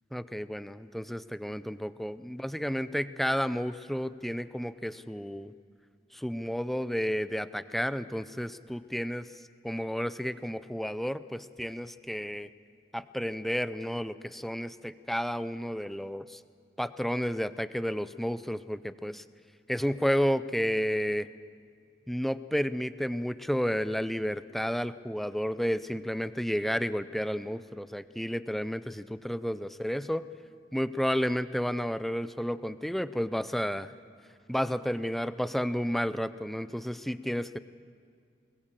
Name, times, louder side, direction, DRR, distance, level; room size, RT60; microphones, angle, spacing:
voice 1, 0.1-5.5 6.1-9.3 9.6-12.5 12.9-16.4 16.8-19.2 19.7-21.3 22.1-30.2 30.7-33.9 34.5-37.6, equal, ahead, 13 dB, 0.5 m, -31 dB
21.0 x 21.0 x 7.4 m, 2.1 s
head